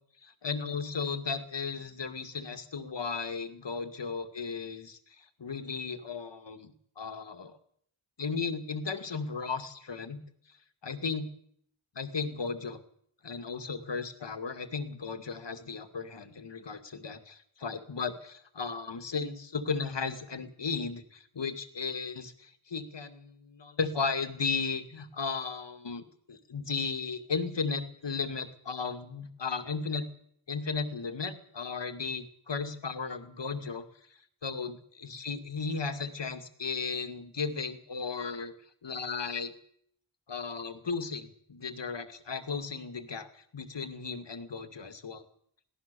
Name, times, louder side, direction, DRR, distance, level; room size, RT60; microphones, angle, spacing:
voice 1, 0.2-7.6 8.2-10.2 10.8-11.3 12.0-12.8 13.2-30.1 30.5-33.9 34.4-38.5 38.8-39.5 40.3-45.2, left 5 dB, 60° left, 9 dB, 2.3 m, -35 dB
23.0 x 17.0 x 7.0 m, 0.66 s
wide cardioid pair, 70°, 49 cm